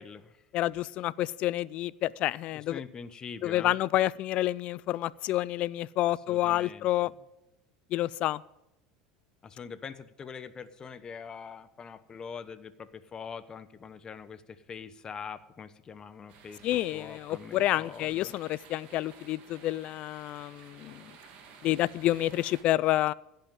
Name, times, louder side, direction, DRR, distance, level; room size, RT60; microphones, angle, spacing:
voice 1, 0.0-0.4 2.5-3.8 6.0-7.1 9.4-18.3, left 6 dB, 30° left, 1.0 m, -44 dB
voice 2, 0.5-2.8 3.4-7.1 7.9-8.4 16.6-21.1 21.6-23.1, left 15 dB, 55° left, 0.4 m, -29 dB
sound 1, 16.3-22.6, right 6 dB, 55° right, 2.4 m, -53 dB
16.0 x 5.7 x 9.1 m
supercardioid pair, 95°, 3 cm